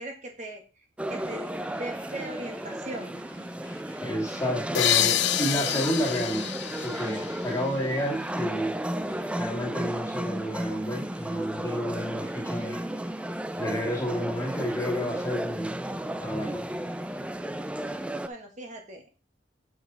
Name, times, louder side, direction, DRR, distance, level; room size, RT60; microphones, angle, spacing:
voice 1, 0.0-3.1 18.3-19.1, right 1 dB, 40° right, 3 dB, 1.4 m, -39 dB
sound 1, 1.0-18.3, right 1 dB, 5° right, 0.3 m, -34 dB
sound 2, 1.2-18.3, right 1 dB, 85° right, 4.3 m, -54 dB
voice 2, 4.0-6.5 6.8-8.8 9.4-12.8 13.6-15.7 16.2-16.6, equal, 15° left, 0 dB, 1.8 m, -30 dB
sound 3, 4.7-8.3, left 12 dB, 65° left, 0.5 m, -28 dB
7.0 x 6.3 x 4.0 m, 0.33 s
head